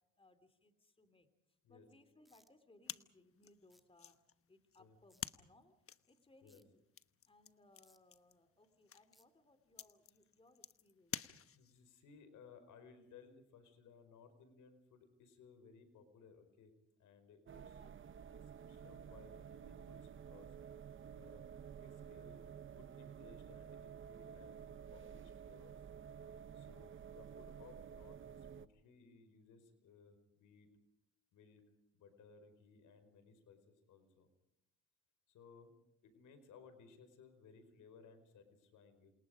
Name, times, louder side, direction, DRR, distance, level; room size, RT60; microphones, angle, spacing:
voice 1, 0.0-5.8 6.1-6.8 7.3-11.3 17.5-18.2, left 2 dB, 20° left, 9 dB, 3.3 m, -68 dB
sound 1, 2.2-2.5 3.7-3.8 5.1-5.2 6.5-6.6 7.8-8.0 9.1-9.2, equal, ahead, 2.2 m, -70 dB
sound 2, 2.8-11.9, left 8 dB, 45° left, 1.1 m, -51 dB
voice 2, 11.5-16.7 17.0-17.8 18.3-20.5 21.1-21.4 21.8-25.8 26.5-30.7 31.3-31.6 31.9-34.3 35.3-35.7 36.0-39.1, left 5 dB, 85° left, 9 dB, 5.0 m, -62 dB
sound 3, 17.5-28.7, right 8 dB, 40° right, 0.8 m, -52 dB
28.5 x 27.5 x 5.2 m, 0.81 s
cardioid pair, 90°, 30 cm